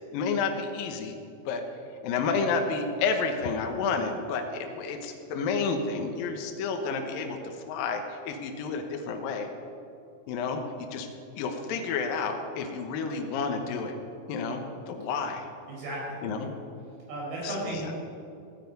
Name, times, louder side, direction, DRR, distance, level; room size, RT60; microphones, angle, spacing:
voice 1, 0.1-1.2 1.5-1.6 2.0-9.5 10.3-11.1 11.4-14.0 14.3-15.5 16.2-16.5 17.4-17.8, left 4 dB, 70° left, 4 dB, 2.7 m, -30 dB
voice 2, 15.7-16.5 17.1-18.0, right 1 dB, 90° right, -5 dB, 7.0 m, -35 dB
16.0 x 14.0 x 5.4 m, 2.6 s
omnidirectional pair, 4.5 m